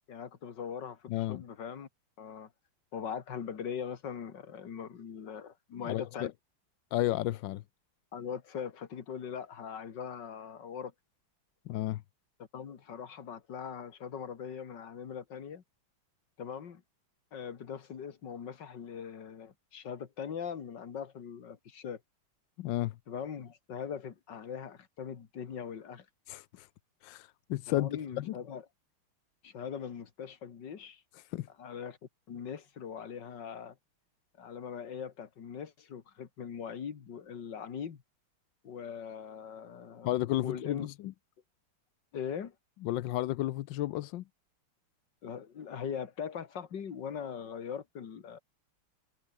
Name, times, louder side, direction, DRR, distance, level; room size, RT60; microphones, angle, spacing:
voice 1, 0.1-1.9 2.2-2.5 2.9-6.3 8.1-10.9 12.5-15.6 16.4-16.8 17.3-22.0 23.1-26.1 27.7-28.6 29.4-31.0 31.6-32.0 32.3-33.8 34.4-38.0 38.6-40.1 40.4-40.9 42.1-42.6 45.2-48.4, left 7 dB, 55° left, 2.3 m, -41 dB
voice 2, 1.1-1.4 5.8-6.3 6.9-7.6 11.6-12.0 22.6-23.0 26.3-26.7 27.0-28.4 31.1-31.5 40.0-41.1 42.8-44.2, left 15 dB, 70° left, 1.2 m, -33 dB
omnidirectional pair, 2.4 m